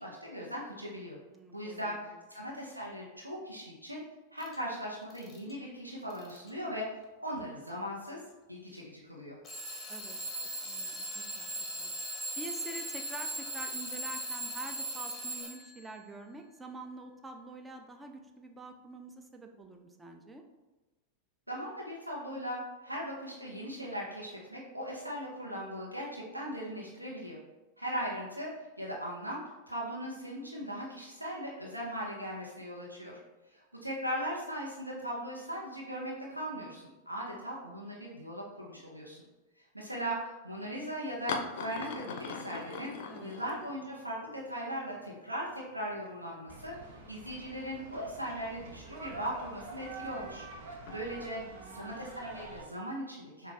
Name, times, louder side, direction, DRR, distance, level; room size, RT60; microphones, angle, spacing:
voice 1, 0.0-1.2 1.5-4.0 4.3-8.2 8.5-9.4 21.5-27.4 27.8-28.5 28.8-33.2 33.5-39.2 39.7-42.9 43.2-46.7 47.1-51.4 51.7-53.5, equal, 85° right, -3 dB, 0.8 m, -39 dB
voice 2, 1.3-2.2 9.9-10.2 10.6-11.5 11.8-11.9 12.4-20.4 43.1-43.3 51.4-51.8, right 2 dB, 10° right, 4 dB, 0.5 m, -47 dB
Alarm / Clock, 4.4-4.6 5.1-5.5 6.1-6.5 7.4-7.5 9.4-15.8, right 1 dB, 15° left, 0.9 m, -39 dB
sound 1, 41.3-44.2 44.4-44.5 45.6-45.7 45.9-46.8 47.3-47.4 48.9-50.1 50.7-51.0 52.1-52.7, left 5 dB, 50° left, 0.5 m, -41 dB
sound 2, 46.5-52.6, right 3 dB, 50° right, 0.9 m, -47 dB
6.3 x 2.4 x 3.3 m, 1.1 s
figure-of-eight pair, 90°, 0 cm